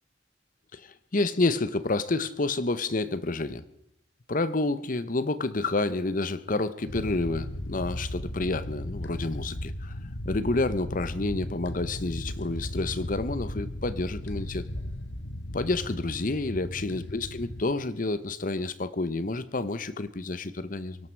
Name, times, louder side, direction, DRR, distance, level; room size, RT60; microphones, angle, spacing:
voice 1, 0.7-3.6 4.3-10.0 10.2-14.7 15.5-21.0, left 2 dB, 45° left, 14 dB, 0.9 m, -29 dB
sound 1, 6.9-17.6, left 1 dB, 75° left, 1.3 m, -36 dB
23.5 x 11.5 x 4.6 m, 0.78 s
head